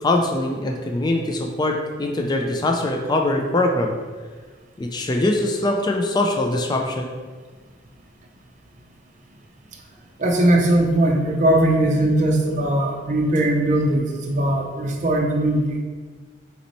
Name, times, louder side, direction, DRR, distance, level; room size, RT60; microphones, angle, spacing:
voice 1, 0.0-4.0 4.8-7.1, left 2 dB, 20° left, 1 dB, 0.3 m, -22 dB
voice 2, 10.2-15.8, right 1 dB, 40° right, 2 dB, 0.5 m, -19 dB
4.1 x 3.0 x 4.0 m, 1.5 s
head